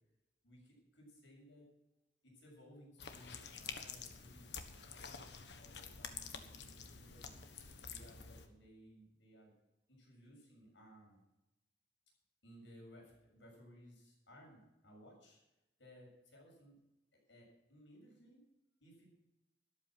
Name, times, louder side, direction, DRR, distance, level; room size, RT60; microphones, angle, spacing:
voice 1, 0.4-1.7 2.2-7.3 7.8-9.5 9.9-11.2 12.4-15.4 15.8-16.8 17.1-18.4 18.8-19.1, equal, 90° left, -1 dB, 7.0 m, -60 dB
sound 1, 3.0-8.5, left 6 dB, 70° left, 1.4 m, -49 dB
13.0 x 12.0 x 6.1 m, 0.93 s
head